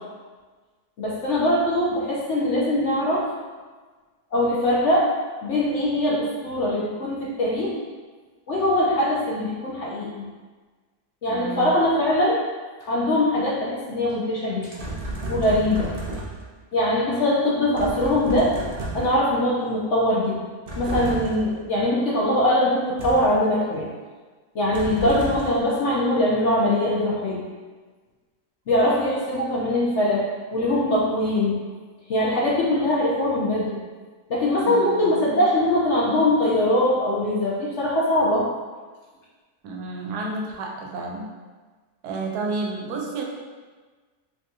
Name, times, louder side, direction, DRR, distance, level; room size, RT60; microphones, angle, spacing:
voice 1, 1.0-3.3 4.3-5.1 5.4-7.7 8.5-10.2 11.2-12.4 12.9-14.8 15.3-15.9 16.7-18.5 18.9-20.4 20.7-23.9 24.5-27.4 28.7-30.2 30.5-31.6 32.1-33.8 34.3-38.5, left 1 dB, 60° left, -4 dB, 0.9 m, -22 dB
voice 2, 11.3-11.8 25.0-25.1 34.6-35.1 39.6-41.3 42.0-43.2, right 3 dB, 85° right, 0 dB, 1.2 m, -31 dB
sound 1, 14.8-16.6 17.8-19.3 20.7-21.6 23.0-23.4 24.7-25.7, right 1 dB, 55° right, 0.6 m, -32 dB
3.7 x 3.5 x 2.7 m, 1.4 s
omnidirectional pair, 1.6 m